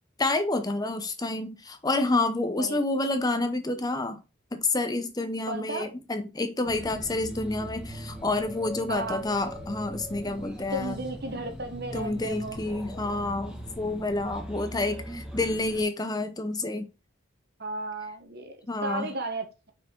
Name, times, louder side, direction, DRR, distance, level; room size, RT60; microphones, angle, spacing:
voice 1, 0.2-4.2 4.5-11.0 11.9-16.9 18.7-19.1, left 2 dB, 20° left, 0.7 m, -29 dB
voice 2, 5.5-5.9 8.9-9.2 10.7-12.6 17.6-19.7, right 2 dB, 50° right, 1.3 m, -34 dB
sound 1, 6.7-15.8, right 1 dB, 5° right, 1.3 m, -40 dB
5.9 x 4.9 x 4.4 m
head